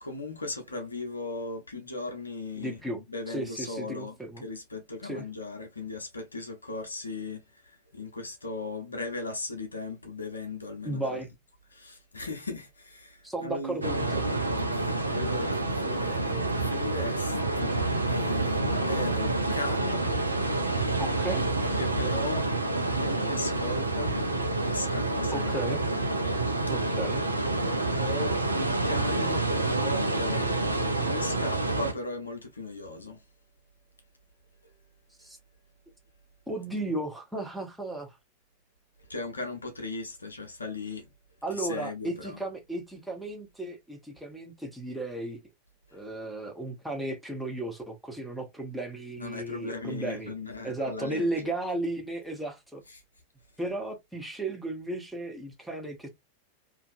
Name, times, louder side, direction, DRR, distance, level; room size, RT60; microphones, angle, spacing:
voice 1, 0.0-11.2 11.7-13.9 14.7-20.1 21.7-22.5 22.9-24.2 24.6-25.9 28.0-33.2 34.6-34.7 39.1-41.1 41.5-42.4 45.9-46.0 49.2-51.5 52.9-53.0, left 2 dB, 80° left, 0.6 m, -37 dB
voice 2, 2.6-3.0 3.3-4.4 5.0-5.2 10.8-11.3 13.2-14.2 21.0-21.4 25.3-25.8 26.7-27.2 35.2-35.4 36.5-38.2 41.4-45.4 45.9-50.3 50.6-52.8 53.6-56.1, right 2 dB, ahead, 0.8 m, -34 dB
sound 1, 13.8-31.9, right 2 dB, 80° right, 0.4 m, -28 dB
2.5 x 2.3 x 2.6 m
figure-of-eight pair, 90°, 0 cm